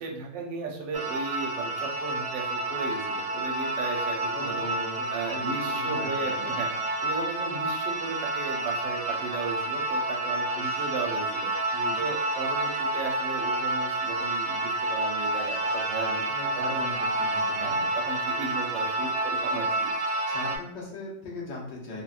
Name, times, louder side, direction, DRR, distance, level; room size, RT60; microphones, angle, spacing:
voice 1, 0.0-4.8 5.1-6.7 7.0-11.5 11.9-16.8 17.5-19.9, right 4 dB, 85° right, 1 dB, 1.3 m, -35 dB
sound 1, 0.9-20.6, right 2 dB, 65° right, 0.7 m, -29 dB
voice 2, 4.3-4.9 5.3-5.4 5.8-6.6 10.5-10.8 11.7-12.0 16.3-17.8 20.3-22.0, left 2 dB, 75° left, -2 dB, 1.4 m, -39 dB
3.8 x 2.1 x 2.3 m, 0.67 s
omnidirectional pair, 2.0 m